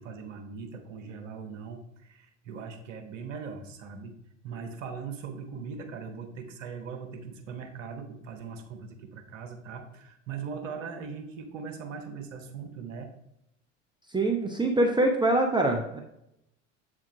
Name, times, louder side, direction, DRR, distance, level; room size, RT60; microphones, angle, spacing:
voice 1, 0.0-4.2 4.4-13.1, right 5 dB, 75° right, 5 dB, 1.1 m, -40 dB
voice 2, 14.1-16.0, right 2 dB, 10° right, 2 dB, 0.7 m, -24 dB
7.6 x 3.7 x 4.6 m, 0.81 s
hypercardioid pair, 70°, 38 cm